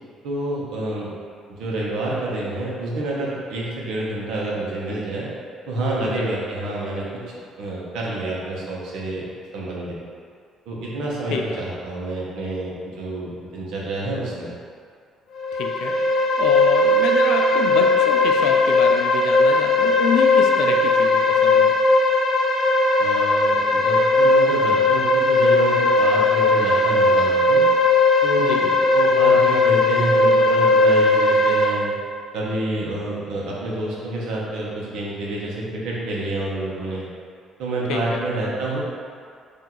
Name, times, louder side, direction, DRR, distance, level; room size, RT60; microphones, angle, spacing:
voice 1, 0.2-1.1 1.5-5.3 5.7-7.0 7.6-9.3 9.5-9.9 10.6-14.5 23.0-27.6 28.2-28.7 28.9-31.9 32.3-37.1 37.6-38.8, right 2 dB, 70° right, -5 dB, 1.0 m, -28 dB
sound 1, 15.3-31.7, left 2 dB, 55° left, 0.9 m, -18 dB
voice 2, 15.5-21.7 28.4-28.7 37.9-38.2, left 6 dB, 75° left, 3 dB, 0.4 m, -28 dB
4.5 x 2.8 x 3.9 m, 2.2 s
cardioid pair, 165°, 0 cm